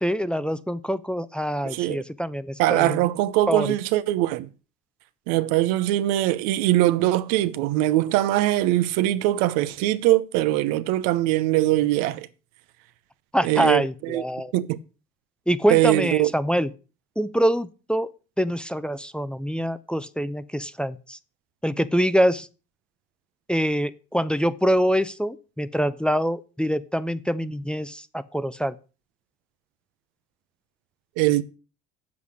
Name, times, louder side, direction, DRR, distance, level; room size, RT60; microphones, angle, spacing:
voice 1, 0.0-3.0 3.5-3.7 13.3-14.5 15.5-16.7 17.2-18.1 18.4-21.2 21.6-22.5 23.5-28.7, equal, 5° left, 0.6 m, -25 dB
voice 2, 1.6-2.0 2.6-4.5 5.3-12.3 13.4-14.2 14.5-14.8 15.7-16.3 31.2-31.4, right 15 dB, 85° right, 0.8 m, -22 dB
8.2 x 7.2 x 6.3 m
supercardioid pair, 75°, 33 cm